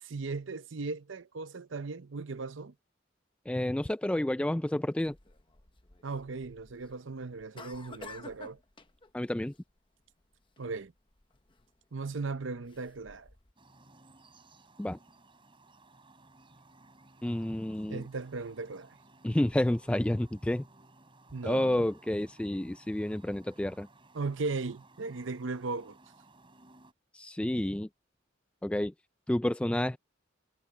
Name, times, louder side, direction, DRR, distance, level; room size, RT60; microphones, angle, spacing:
voice 1, 0.0-2.7 6.0-8.6 10.6-10.9 11.9-13.3 17.9-19.0 21.3-21.9 24.1-26.0, right 3 dB, 75° right, 0.7 m, -37 dB
voice 2, 3.5-5.2 9.1-9.5 14.8-15.0 17.2-18.0 19.2-20.6 21.4-23.9 27.1-27.9 28.6-28.9 29.3-30.0, left 1 dB, 5° left, 0.3 m, -30 dB
sound 1, 5.0-13.5, left 3 dB, 25° left, 1.0 m, -53 dB
sound 2, 13.6-26.9, right 2 dB, 25° right, 3.6 m, -59 dB
head